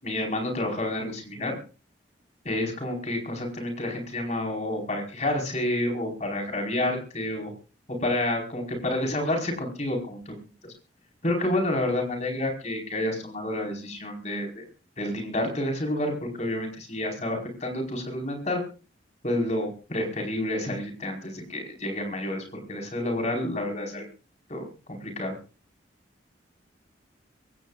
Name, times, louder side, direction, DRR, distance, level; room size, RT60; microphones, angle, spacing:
voice 1, 0.0-1.6 2.4-7.5 7.9-10.3 10.6-10.7 11.2-14.6 15.0-18.6 19.2-24.1 24.5-25.4, left 1 dB, 35° left, 3 dB, 4.9 m, -29 dB
23.5 x 16.5 x 2.5 m, 0.34 s
head